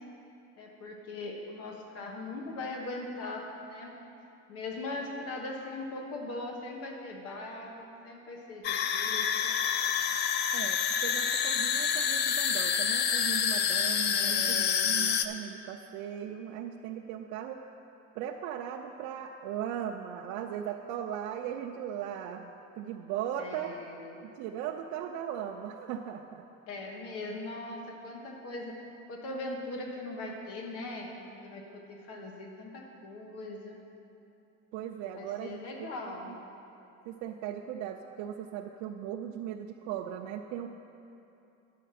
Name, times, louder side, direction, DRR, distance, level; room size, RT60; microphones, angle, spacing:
voice 1, 0.6-3.9 4.5-9.6 14.1-15.0 23.4-24.2 26.7-28.8 29.1-33.8 35.1-36.3, left 2 dB, 55° left, 0 dB, 1.3 m, -40 dB
sound 1, 8.6-15.3, left 7 dB, 40° left, 0.4 m, -28 dB
voice 2, 10.5-17.7 18.2-23.7 24.2-26.4 26.8-27.0 34.7-36.4 37.1-40.7, right 10 dB, 80° right, 2 dB, 0.5 m, -38 dB
10.0 x 6.6 x 5.9 m, 2.8 s
cardioid pair, 160°, 29 cm